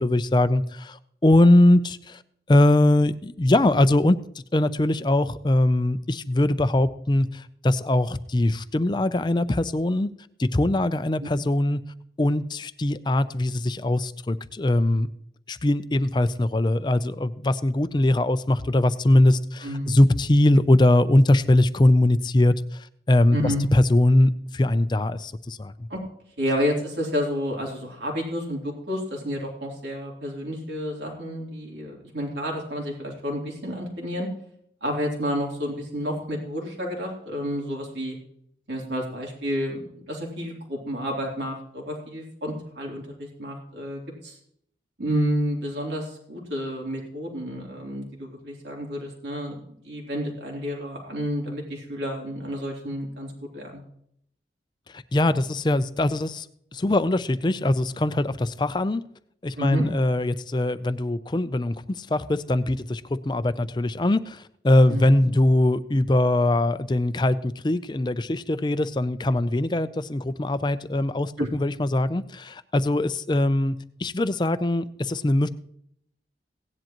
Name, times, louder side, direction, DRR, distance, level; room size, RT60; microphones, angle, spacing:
voice 1, 0.0-2.2 2.5-4.2 4.5-10.1 10.4-11.8 12.2-15.1 15.5-25.9 54.9-56.5 56.7-59.0 59.4-75.5, left 1 dB, 25° left, 13 dB, 0.4 m, -21 dB
voice 2, 19.6-20.0 23.3-23.7 25.9-26.0 26.4-34.3 34.8-38.2 38.7-44.4 45.0-53.8 59.6-59.8 64.9-65.2 71.4-71.5, equal, 85° right, -1 dB, 3.2 m, -30 dB
17.0 x 10.5 x 3.0 m, 0.70 s
head